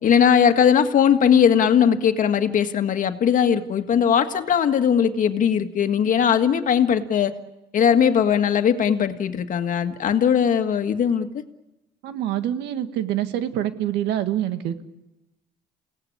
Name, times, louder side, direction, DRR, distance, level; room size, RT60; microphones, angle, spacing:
voice 1, 0.0-7.3 7.7-11.3, left 8 dB, 50° left, 8 dB, 1.8 m, -19 dB
voice 2, 12.0-14.8, right 11 dB, 85° right, 10 dB, 1.7 m, -26 dB
29.0 x 18.0 x 8.7 m, 1.0 s
cardioid pair, 110°, 17 cm